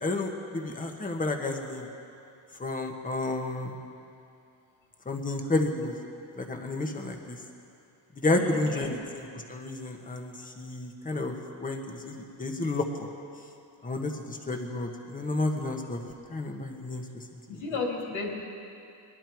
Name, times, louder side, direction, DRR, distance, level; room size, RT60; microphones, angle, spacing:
voice 1, 0.0-1.9 2.6-3.8 5.0-6.0 6.3-7.4 8.1-13.1 13.8-16.0 16.3-17.2 17.5-17.6, left 2 dB, 15° left, 3 dB, 1.3 m, -31 dB
voice 2, 8.3-9.0 17.5-18.3, left 4 dB, 85° left, 0 dB, 2.8 m, -33 dB
20.5 x 11.5 x 4.6 m, 2.6 s
cardioid pair, 125°, 46 cm